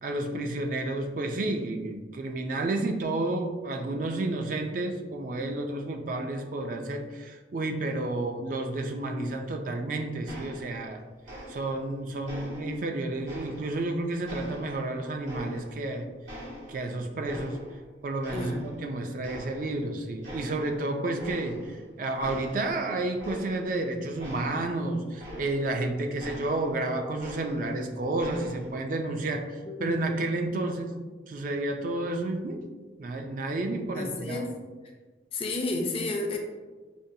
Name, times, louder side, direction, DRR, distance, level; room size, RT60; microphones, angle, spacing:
voice 1, 0.0-11.0 11.5-16.1 16.7-17.6 18.0-30.9 31.3-32.6 33.0-34.5, right 2 dB, 45° right, 4 dB, 0.3 m, -31 dB
sound 1, 10.3-11.0 11.2-11.9 12.3-13.9 14.3-15.9 16.3-17.9 18.2-18.9 19.2-19.9 20.2-20.8 21.2-21.8 22.2-25.8 26.2-27.8 28.2-28.8, equal, 85° right, 1.4 m, -43 dB
voice 2, 29.7-30.0 33.9-34.5 35.3-36.4, left 2 dB, 30° left, 2 dB, 0.4 m, -31 dB
5.2 x 2.2 x 2.7 m, 1.3 s
head